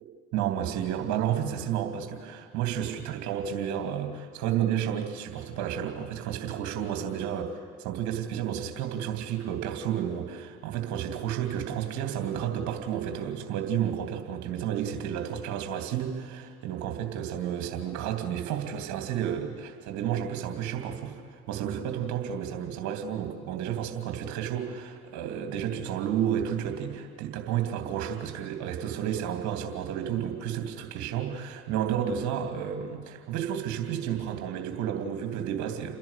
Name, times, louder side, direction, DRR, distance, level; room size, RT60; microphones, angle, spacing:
voice 1, 0.3-21.2 21.5-35.9, right 9 dB, 60° right, 4 dB, 3.1 m, -31 dB
29.5 x 10.5 x 8.4 m, 2.4 s
hypercardioid pair, 70°, 33 cm